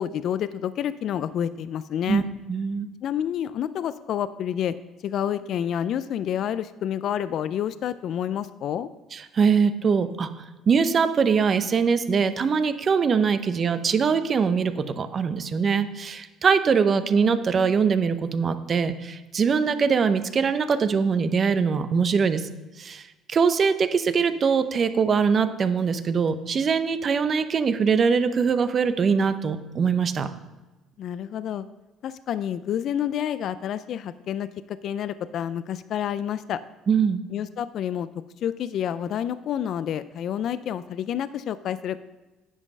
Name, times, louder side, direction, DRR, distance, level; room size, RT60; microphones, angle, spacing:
voice 1, 0.0-2.3 3.0-4.7 5.0-8.9 31.0-31.7 32.0-36.6 37.3-38.1 38.4-42.0, left 9 dB, 60° left, 14 dB, 0.4 m, -29 dB
voice 2, 2.5-2.9 9.1-10.3 10.7-22.4 22.8-30.3 36.9-37.2, right 6 dB, 40° right, 11 dB, 0.7 m, -22 dB
9.8 x 5.2 x 5.4 m, 1.1 s
supercardioid pair, 85°, 0 cm